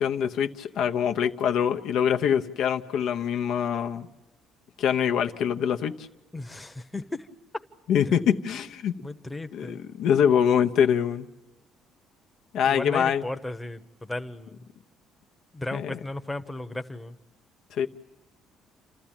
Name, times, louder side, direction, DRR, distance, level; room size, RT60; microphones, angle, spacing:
voice 1, 0.0-4.1 4.8-5.9 7.9-8.9 9.5-11.3 12.5-13.2 15.7-15.9 17.8-17.9, left 8 dB, 70° left, 6 dB, 0.9 m, -24 dB
voice 2, 6.3-7.3 8.1-8.3 9.0-9.8 12.6-14.7 15.5-17.2, left 2 dB, 10° left, 7 dB, 0.9 m, -35 dB
28.5 x 13.5 x 9.0 m, 1.1 s
cardioid pair, 110°, 0 cm